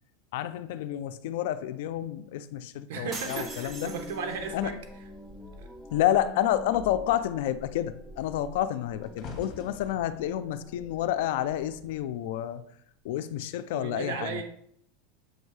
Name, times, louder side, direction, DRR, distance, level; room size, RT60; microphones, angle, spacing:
voice 1, 0.3-3.9 4.5-4.7 5.9-12.6 13.0-14.4, left 12 dB, 65° left, 12 dB, 0.4 m, -29 dB
sound 1, 2.9-5.7 6.0-6.3 6.7-12.0 12.7-13.0, left 4 dB, 35° left, 1.3 m, -49 dB
voice 2, 2.9-4.7 5.6-5.7 13.7-14.4, right 5 dB, 70° right, 4 dB, 0.9 m, -35 dB
sound 2, 3.1-4.6, right 3 dB, 25° right, 1.0 m, -41 dB
sound 3, 3.3-12.0, left 1 dB, 5° right, 0.6 m, -46 dB
7.8 x 2.7 x 4.7 m, 0.68 s
supercardioid pair, 155°, 0 cm